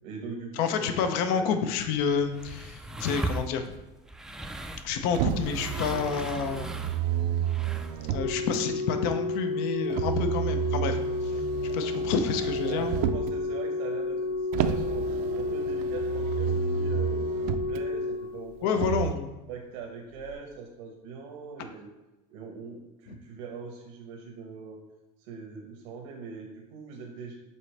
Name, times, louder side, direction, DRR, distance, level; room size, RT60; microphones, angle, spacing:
voice 1, 0.0-1.4 12.6-15.1 15.3-18.9 19.5-21.9 22.3-24.8 25.2-27.3, right 5 dB, 85° right, 1 dB, 1.0 m, -42 dB
voice 2, 0.5-3.8 4.8-6.7 8.1-11.5 11.7-13.0 18.6-19.3 23.1-23.2, left 6 dB, 70° left, 7 dB, 0.7 m, -29 dB
sound 1, 1.8-8.1, right 2 dB, 5° right, 0.3 m, -38 dB
Motor vehicle (road), 5.1-8.6 9.9-13.4 14.5-17.8 18.7-19.1, right 10 dB, 65° right, 0.5 m, -31 dB
Organ, 8.1-19.0 20.2-20.3, left 3 dB, 85° left, 1.0 m, -31 dB
7.3 x 4.2 x 3.3 m, 1.0 s
supercardioid pair, 130°, 17 cm